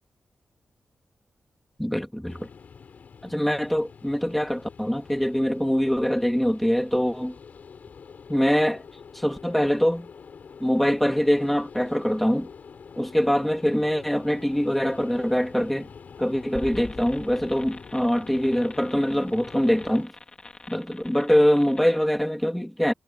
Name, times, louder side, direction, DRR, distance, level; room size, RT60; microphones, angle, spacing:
voice 1, 1.8-2.5 3.2-7.3 8.3-8.8 9.1-10.1 10.6-12.5 13.0-15.9 16.2-20.1 20.7-22.9, equal, 5° left, 2.7 m, -23 dB
sound 1, 2.3-20.1, left 6 dB, 55° left, 5.9 m, -46 dB
sound 2, 16.5-22.0, left 3 dB, 25° left, 3.1 m, -44 dB
wide cardioid pair, 170°, 3 cm